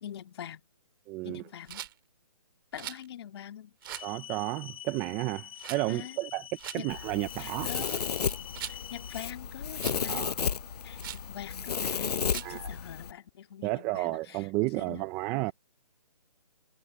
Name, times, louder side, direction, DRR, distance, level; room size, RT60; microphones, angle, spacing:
voice 1, 0.0-0.6 1.2-1.8 2.7-3.7 5.9-6.2 6.7-6.9 7.4-8.4 8.6-10.4 10.8-15.0, left 10 dB, 40° left, 2.2 m, -44 dB
voice 2, 1.1-1.4 4.0-6.5 6.7-8.0 10.1-10.4 12.4-12.7 13.6-15.5, right 21 dB, 10° right, 0.4 m, -32 dB
Rattle, 1.7-1.9 2.7-3.1 3.8-4.1 5.6-5.8 6.6-6.8 7.6-8.8 9.8-10.1 11.0-11.3 12.3-12.6, right 12 dB, 35° right, 2.7 m, -41 dB
sound 1, 3.8-9.2, left 11 dB, 60° left, 2.7 m, -46 dB
Domestic sounds home sounds, 6.9-13.1, left 6 dB, 80° left, 0.6 m, -33 dB
hypercardioid pair, 155°, 20 cm